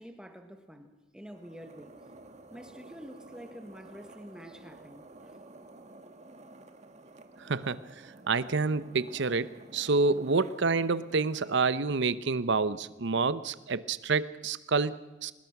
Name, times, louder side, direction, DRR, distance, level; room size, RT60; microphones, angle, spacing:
voice 1, 0.0-2.0 2.5-5.3, equal, 5° right, 1.5 m, -47 dB
sound 1, 1.2-12.8, right 2 dB, 35° right, 1.8 m, -52 dB
voice 2, 7.4-7.8 8.3-15.3, right 4 dB, 70° right, 0.8 m, -28 dB
24.0 x 20.5 x 6.0 m
head